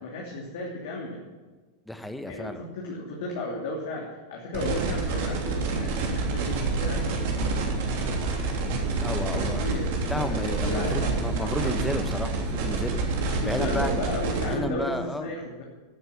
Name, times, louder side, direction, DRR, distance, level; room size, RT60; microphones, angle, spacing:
voice 1, 0.0-1.2 2.3-7.4 9.2-11.8 13.4-15.6, left 1 dB, 55° left, -2 dB, 3.0 m, -34 dB
voice 2, 1.9-2.6 9.0-9.7 10.0-13.0 13.4-14.0 14.4-15.3, left 1 dB, 5° left, 8 dB, 1.4 m, -32 dB
sound 1, 4.5-14.5, right 3 dB, 50° right, 3.2 m, -28 dB
16.5 x 9.7 x 6.0 m, 1.3 s
figure-of-eight pair, 90°, 0 cm